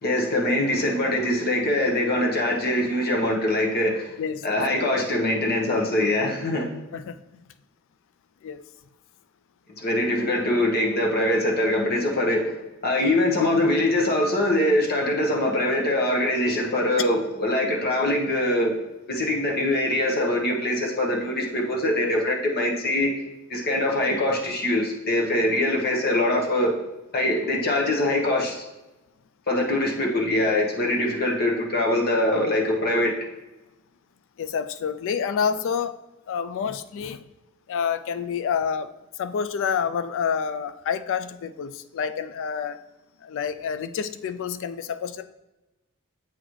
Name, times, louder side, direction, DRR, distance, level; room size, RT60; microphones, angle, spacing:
voice 1, 0.0-4.1 4.4-6.7 9.8-12.5 12.8-18.7 19.1-23.1 23.5-26.7 27.1-28.6 29.5-33.1, left 1 dB, 45° left, -1 dB, 1.1 m, -23 dB
voice 2, 4.2-4.6 6.9-7.4 8.4-8.6 34.4-36.0 36.3-37.2 37.7-38.9 39.2-42.8 43.2-45.3, left 6 dB, 60° left, 12 dB, 0.3 m, -28 dB
7.7 x 3.9 x 3.1 m, 1.0 s
head